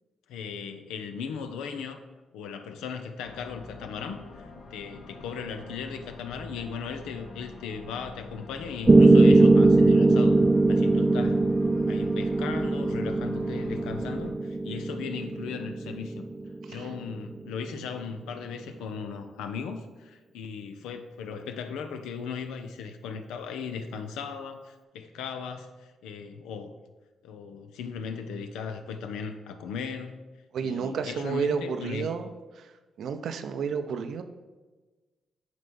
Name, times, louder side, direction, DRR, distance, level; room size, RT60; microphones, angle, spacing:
voice 1, 0.3-2.0 2.3-10.4 10.7-11.5 11.9-16.2 16.7-26.8 27.2-30.2 30.6-32.1, left 6 dB, 85° left, 7 dB, 0.6 m, -37 dB
sound 1, 3.2-14.3, left 3 dB, 70° left, 0.9 m, -46 dB
Piano, 8.9-16.9, right 2 dB, 25° right, 0.5 m, -21 dB
voice 2, 30.5-32.3 32.5-32.7 33.0-34.2, right 6 dB, 70° right, 8 dB, 0.6 m, -31 dB
9.2 x 3.2 x 5.3 m, 1.3 s
supercardioid pair, 65°, 0 cm